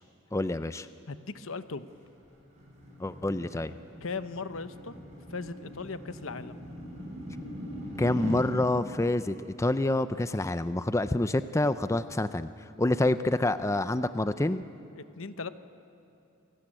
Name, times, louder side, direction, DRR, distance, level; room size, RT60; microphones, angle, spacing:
voice 1, 0.3-0.9 3.0-3.7 8.0-12.5 12.8-14.6, left 2 dB, 15° left, 12 dB, 0.5 m, -27 dB
voice 2, 1.1-1.9 4.0-5.0 5.3-6.6 15.0-15.5, left 4 dB, 80° left, 11 dB, 1.0 m, -38 dB
sound 1, 1.9-8.4, equal, 35° right, 7.6 m, -41 dB
28.5 x 17.5 x 8.9 m, 2.7 s
head